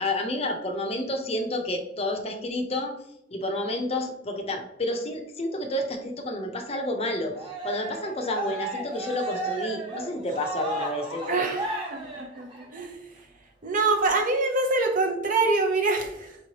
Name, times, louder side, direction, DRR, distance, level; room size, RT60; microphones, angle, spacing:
voice 1, 0.0-2.9 3.3-7.3 7.6-11.5, left 1 dB, 35° left, 3 dB, 0.6 m, -30 dB
Cheering, 7.3-12.8, right 2 dB, 25° right, 1.1 m, -34 dB
voice 2, 11.3-11.6 11.9-13.0 13.6-16.4, right 3 dB, 45° right, 3 dB, 0.6 m, -25 dB
4.8 x 3.1 x 2.8 m, 0.81 s
head